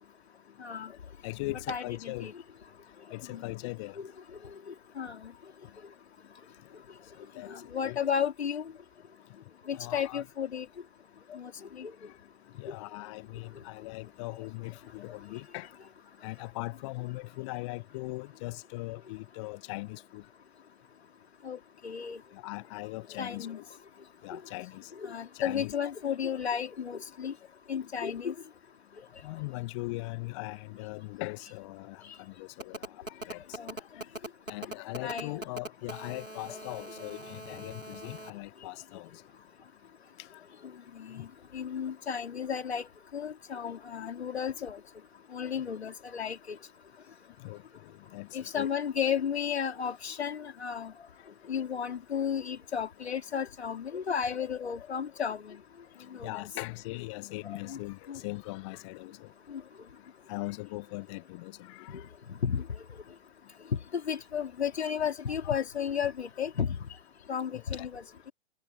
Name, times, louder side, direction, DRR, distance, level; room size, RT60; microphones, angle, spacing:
voice 1, 0.6-0.9 1.5-2.3 3.3-3.4 4.0-4.1 4.7-5.3 7.5-8.7 9.7-10.7 11.3-11.9 21.4-22.2 23.2-23.6 24.3-24.4 25.0-27.3 27.7-28.3 33.6-33.8 35.0-35.4 40.9-41.3 41.5-42.9 43.1-44.8 45.3-46.6 48.3-50.9 51.5-55.6 56.1-56.4 57.4-57.8 58.1-58.2 59.5-59.6 61.9-62.0 62.3-62.6 63.9-66.9 67.3-68.3, left 7 dB, 55° left, 3.1 m, -33 dB
voice 2, 1.2-2.3 3.1-4.0 7.2-7.5 7.8-8.0 9.7-10.2 12.0-12.1 12.6-15.7 16.2-20.2 22.3-23.6 24.2-24.9 25.3-25.9 29.2-33.6 33.9-34.0 34.5-39.2 40.2-40.4 41.2-41.3 47.4-47.6 48.1-48.7 56.2-59.3 60.3-62.0 65.4-65.5 67.8-67.9, left 23 dB, 25° left, 1.3 m, -40 dB
Telephone, 32.6-38.3, right 1 dB, 90° right, 2.6 m, -41 dB
figure-of-eight pair, 125°, 38 cm